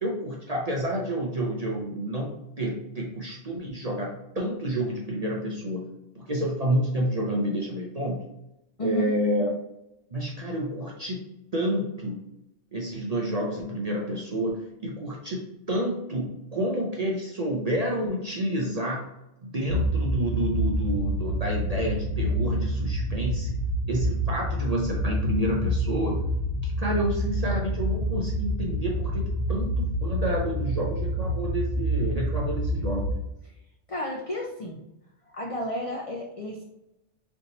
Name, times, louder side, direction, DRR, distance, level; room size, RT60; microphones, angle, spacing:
voice 1, 0.0-5.8 6.1-8.2 8.8-9.5 10.1-11.2 11.5-12.2 12.7-15.4 15.7-19.1 19.4-23.5 23.9-26.2 26.6-33.1, right 1 dB, 45° right, -2 dB, 0.5 m, -29 dB
voice 2, 8.8-9.1 33.9-34.8 35.3-36.6, equal, 55° left, -2 dB, 0.3 m, -32 dB
sound 1, 19.7-33.1, equal, 75° left, 1.3 m, -27 dB
3.4 x 2.7 x 4.0 m, 0.87 s
omnidirectional pair, 1.3 m